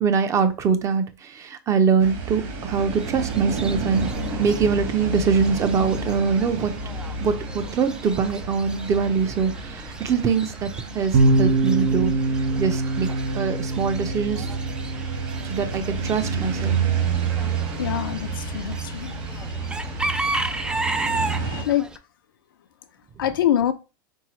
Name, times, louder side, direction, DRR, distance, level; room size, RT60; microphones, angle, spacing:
voice 1, 0.0-4.1 4.4-6.7 7.2-10.7 10.9-12.1 12.6-13.1 13.3-14.5 15.4-16.8, right 6 dB, 25° right, 0.7 m, -23 dB
sound 1, 2.0-21.6, right 5 dB, 45° right, 1.6 m, -30 dB
Chicken rooster / Bird, 2.8-22.0, right 2 dB, 5° right, 0.3 m, -35 dB
sound 2, 11.1-20.6, right 2 dB, 70° right, 1.2 m, -26 dB
voice 2, 17.8-19.1 21.4-21.9 23.2-23.7, left 11 dB, 90° left, 0.6 m, -24 dB
4.5 x 3.6 x 3.1 m
supercardioid pair, 130°, 11 cm